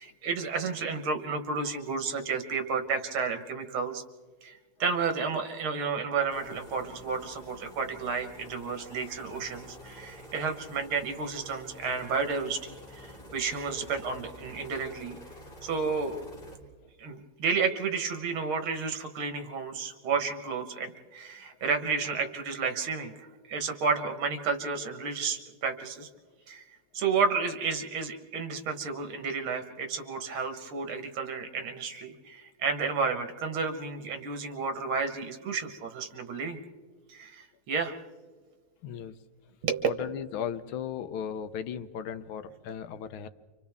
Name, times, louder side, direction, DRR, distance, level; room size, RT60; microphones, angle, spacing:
voice 1, 0.0-4.0 4.4-15.2 15.6-16.2 17.0-23.1 23.5-26.1 26.5-26.6 26.9-36.6 37.1-38.0 39.6-39.9, right 5 dB, 80° right, 6 dB, 2.2 m, -31 dB
sound 1, 6.3-16.6, left 1 dB, 25° left, 3.3 m, -48 dB
voice 2, 38.8-39.2 39.8-43.3, left 8 dB, 80° left, 12 dB, 1.6 m, -36 dB
29.0 x 25.5 x 3.5 m, 1.4 s
omnidirectional pair, 2.3 m